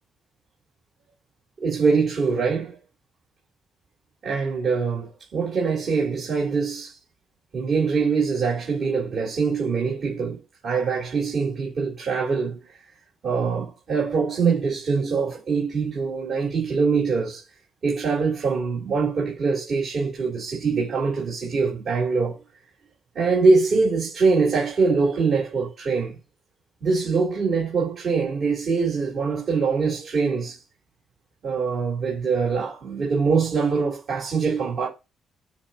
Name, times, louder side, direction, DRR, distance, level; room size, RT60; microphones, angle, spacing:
voice 1, 1.6-2.8 4.2-7.0 7.5-12.6 13.2-17.4 17.8-22.4 23.1-26.2 26.8-30.6 31.4-34.9, right 4 dB, 55° right, 3.9 m, -23 dB
8.7 x 3.1 x 5.6 m
cardioid pair, 90°, 0 cm